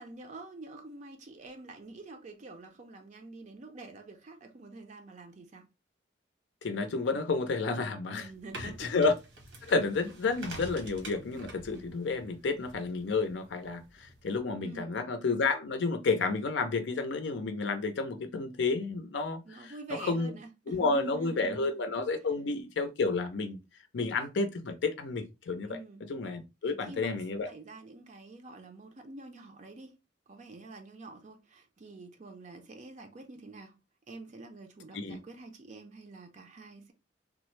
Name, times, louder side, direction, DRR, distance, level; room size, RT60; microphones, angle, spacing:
voice 1, 0.0-5.7 8.1-8.9 14.6-15.0 19.4-21.8 25.6-26.0 26.6-27.1 27.5-29.9 30.3-33.7 34.1-36.9, right 2 dB, 40° right, 0.5 m, -47 dB
voice 2, 6.6-8.3 8.6-9.2 9.7-19.7 20.0-20.3 20.7-23.6 23.9-27.5 34.9-35.2, left 3 dB, 70° left, 0.5 m, -31 dB
sound 1, 8.2-14.4, right 2 dB, 80° right, 1.1 m, -48 dB
3.5 x 2.0 x 3.1 m
head